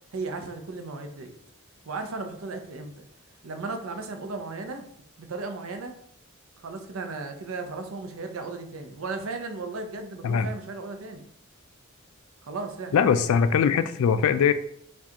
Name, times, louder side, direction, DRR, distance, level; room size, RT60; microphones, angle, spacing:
voice 1, 0.1-1.3 1.9-3.1 3.4-4.8 5.2-5.9 6.6-11.3 12.4-13.0, right 3 dB, 65° right, 6 dB, 0.5 m, -35 dB
voice 2, 12.9-14.5, left 7 dB, 75° left, 12 dB, 0.3 m, -21 dB
4.6 x 2.3 x 2.8 m, 0.68 s
head